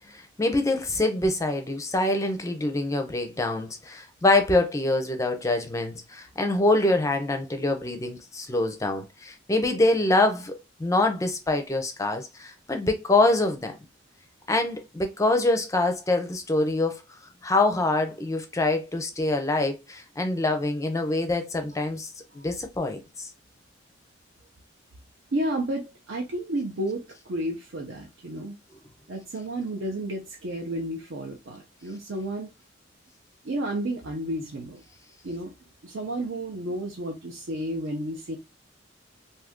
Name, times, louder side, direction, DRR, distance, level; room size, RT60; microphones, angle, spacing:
voice 1, 0.1-13.7 14.5-17.0 17.4-23.3, left 2 dB, 15° left, 0.4 m, -25 dB
voice 2, 25.3-28.6 29.1-32.5 33.4-34.8 35.2-35.5 35.8-38.4, right 1 dB, 70° right, 0.6 m, -31 dB
2.6 x 2.5 x 3.5 m
head